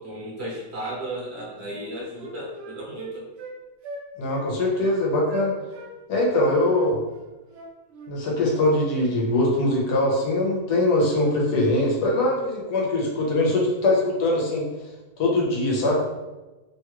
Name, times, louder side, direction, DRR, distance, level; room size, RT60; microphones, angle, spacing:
voice 1, 0.0-3.3, right 1 dB, 50° right, -4 dB, 1.0 m, -34 dB
Wind instrument woodwind instrument, 1.3-1.5 1.8-3.6 3.8-4.0 4.3-4.5 4.8-5.0 5.3-5.9 6.2-8.1, right 3 dB, 85° right, 0.5 m, -39 dB
voice 2, 4.2-5.5 6.1-7.0 8.1-14.7 15.2-16.0, left 1 dB, 85° left, -3 dB, 1.3 m, -22 dB
3.0 x 2.3 x 2.9 m, 1.1 s
omnidirectional pair, 1.7 m